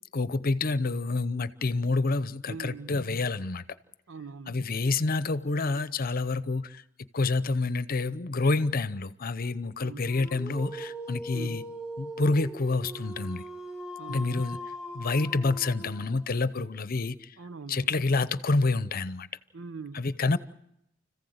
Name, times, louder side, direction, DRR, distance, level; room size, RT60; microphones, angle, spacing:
voice 1, 0.1-3.6 4.5-6.8 7.1-11.6 12.0-13.4 14.1-14.6 14.9-17.4 17.7-19.3 19.9-20.4, left 3 dB, 50° left, 0.8 m, -28 dB
voice 2, 2.5-3.0 4.1-4.6 9.8-10.1 11.3-11.7 14.0-14.4 17.4-18.0 19.5-20.0, right 4 dB, 85° right, 0.8 m, -42 dB
Dog, 10.0-16.4, right 1 dB, 5° right, 1.7 m, -40 dB
30.0 x 15.0 x 8.0 m
head